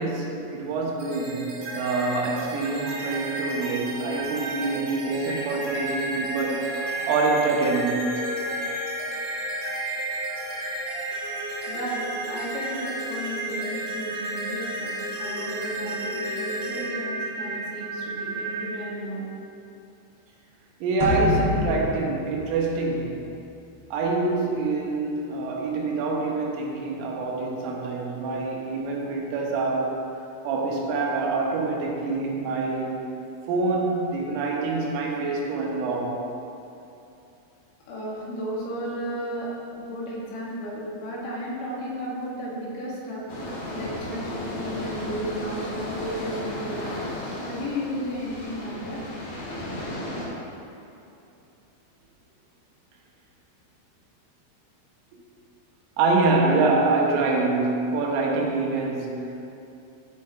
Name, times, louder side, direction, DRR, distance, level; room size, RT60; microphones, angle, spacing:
voice 1, 0.0-8.3 20.8-23.3 23.9-30.0 30.4-33.0 33.5-36.2 56.0-59.3, right 3 dB, 85° right, -1 dB, 3.8 m, -26 dB
sound 1, 1.0-18.7, right 1 dB, 55° right, 3.6 m, -32 dB
voice 2, 11.7-19.3 37.9-43.2 43.7-46.9 47.4-49.0, equal, 75° left, -6 dB, 4.2 m, -33 dB
sound 2, 21.0-23.5, left 2 dB, 40° right, 2.1 m, -28 dB
sound 3, 43.3-50.3, left 1 dB, 55° left, 3.2 m, -34 dB
14.0 x 5.8 x 4.3 m, 2.8 s
omnidirectional pair, 5.6 m